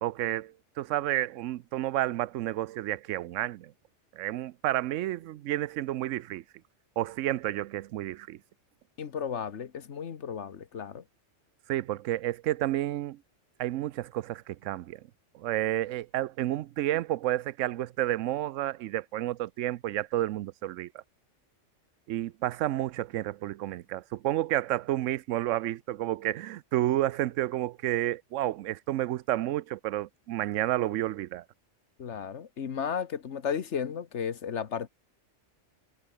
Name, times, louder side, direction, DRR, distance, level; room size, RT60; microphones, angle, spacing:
voice 1, 0.0-3.7 4.1-6.4 7.0-8.4 11.7-13.2 13.6-15.0 15.3-21.0 22.1-31.4, right 14 dB, 90° right, 0.9 m, -30 dB
voice 2, 9.0-11.0 32.0-34.9, left 7 dB, 70° left, 1.4 m, -34 dB
omnidirectional pair, 1.3 m